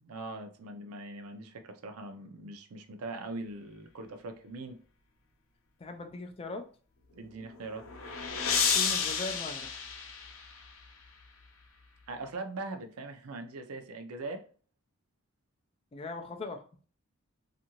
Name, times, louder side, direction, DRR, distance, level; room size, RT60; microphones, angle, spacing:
voice 1, 0.0-4.8 7.1-7.9 12.1-14.4, right 2 dB, 85° right, 0.5 m, -41 dB
voice 2, 5.8-6.7 8.7-9.7 15.9-16.8, left 2 dB, 25° left, 0.3 m, -40 dB
sound 1, 7.4-10.8, left 6 dB, 65° left, 0.6 m, -31 dB
2.6 x 2.5 x 2.8 m
head